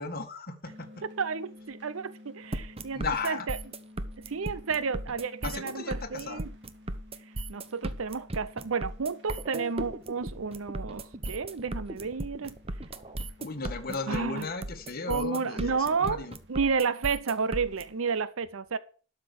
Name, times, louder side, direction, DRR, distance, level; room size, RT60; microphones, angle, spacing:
voice 1, 0.0-1.0 2.9-3.5 5.4-6.4 13.4-16.3, left 4 dB, 50° left, 1.8 m, -35 dB
sound 1, 0.6-18.2, left 1 dB, 60° right, 2.9 m, -54 dB
voice 2, 1.2-3.6 4.3-6.5 7.5-12.6 14.1-14.5 15.1-18.8, right 5 dB, 80° right, 0.7 m, -31 dB
sound 2, 2.5-17.8, right 1 dB, 30° right, 1.0 m, -36 dB
12.0 x 6.0 x 6.3 m
head